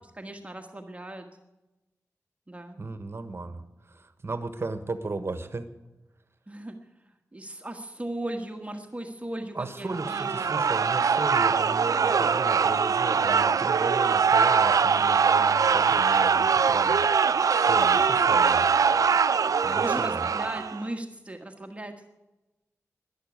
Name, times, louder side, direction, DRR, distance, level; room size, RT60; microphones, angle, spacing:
voice 1, 0.1-1.3 2.5-2.8 6.5-6.8 7.3-10.6 19.7-22.1, right 1 dB, 25° right, 4 dB, 1.4 m, -37 dB
voice 2, 2.8-5.7 9.5-19.1 19.6-20.3, right 3 dB, 45° right, 10 dB, 1.3 m, -36 dB
sound 1, 9.9-20.8, right 6 dB, 85° right, 0.5 m, -22 dB
12.5 x 11.5 x 9.6 m, 1.0 s
wide cardioid pair, 70°, 6 cm